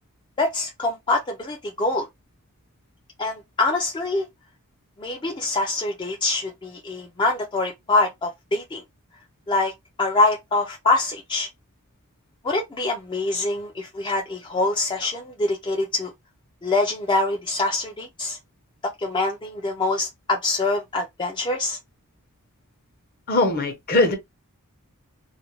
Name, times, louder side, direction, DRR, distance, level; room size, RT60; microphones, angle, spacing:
voice 1, 0.4-2.1 3.2-4.3 5.0-8.8 9.5-9.7 10.0-11.5 12.4-16.1 16.6-18.4 18.8-21.8, left 2 dB, 20° left, 0.4 m, -24 dB
voice 2, 23.3-24.2, left 2 dB, 40° left, 0.7 m, -20 dB
2.4 x 2.1 x 2.9 m
head